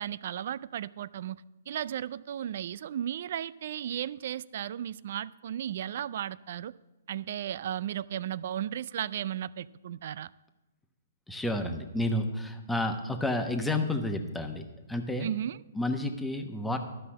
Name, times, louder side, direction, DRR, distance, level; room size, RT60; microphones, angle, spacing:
voice 1, 0.0-6.7 7.1-10.3 15.2-15.6, right 10 dB, 60° right, 0.3 m, -35 dB
voice 2, 11.3-14.6 14.9-15.3 15.7-16.8, left 1 dB, 5° left, 1.0 m, -30 dB
12.5 x 5.7 x 7.6 m
hypercardioid pair, 130°, 0 cm